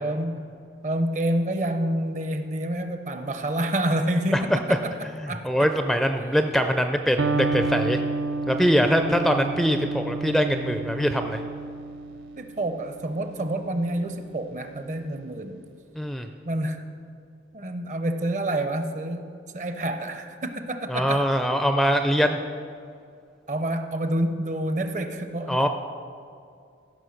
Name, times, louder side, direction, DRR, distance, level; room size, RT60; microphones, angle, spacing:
voice 1, 0.0-0.5 0.8-5.7 12.4-15.6 16.4-16.9 17.5-21.3 23.5-25.7, right 1 dB, 40° right, 8 dB, 0.7 m, -28 dB
voice 2, 5.2-8.0 8.5-11.4 16.0-16.3 20.9-22.4 25.5-25.7, equal, ahead, 6 dB, 0.4 m, -23 dB
Electric guitar, 7.2-15.0, right 3 dB, 85° right, 0.5 m, -31 dB
15.5 x 5.6 x 6.4 m, 2.3 s
head